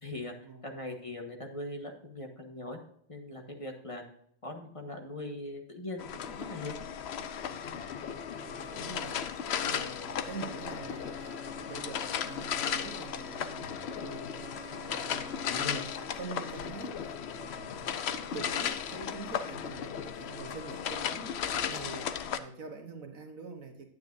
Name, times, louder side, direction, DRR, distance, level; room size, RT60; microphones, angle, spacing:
voice 1, 0.0-2.8 3.1-4.0 4.4-6.8 15.4-15.8, left 2 dB, 25° left, 1.3 m, -40 dB
sound 1, 6.0-22.4, left 8 dB, 60° left, 0.8 m, -36 dB
voice 2, 8.4-15.6 15.9-23.9, right 4 dB, 75° right, 1.6 m, -45 dB
Bowed string instrument, 10.0-16.7, left 1 dB, 5° right, 2.5 m, -50 dB
10.5 x 9.0 x 2.6 m
omnidirectional pair, 1.5 m